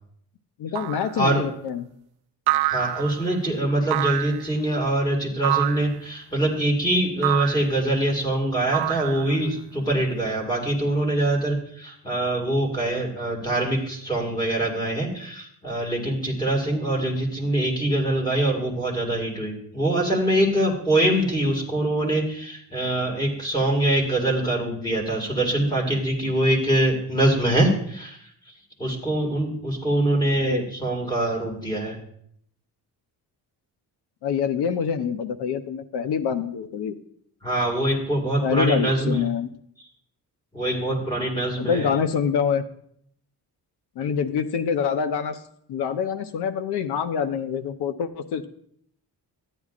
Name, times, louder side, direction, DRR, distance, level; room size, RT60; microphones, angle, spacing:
voice 1, 0.6-1.9 30.4-30.7 34.2-37.0 38.4-39.5 41.6-42.6 44.0-45.4 45.7-48.5, left 7 dB, 80° left, 9 dB, 0.8 m, -25 dB
sound 1, 0.8-1.2 2.5-3.2 3.9-4.5 5.4-6.0 7.2-7.7 8.7-9.5, right 15 dB, 75° right, 0.5 m, -26 dB
voice 2, 2.7-28.2 28.8-32.0 37.4-39.2 40.5-41.9, right 1 dB, 10° left, 0 dB, 2.0 m, -24 dB
13.5 x 10.0 x 2.5 m, 0.69 s
wide cardioid pair, 165°, 39 cm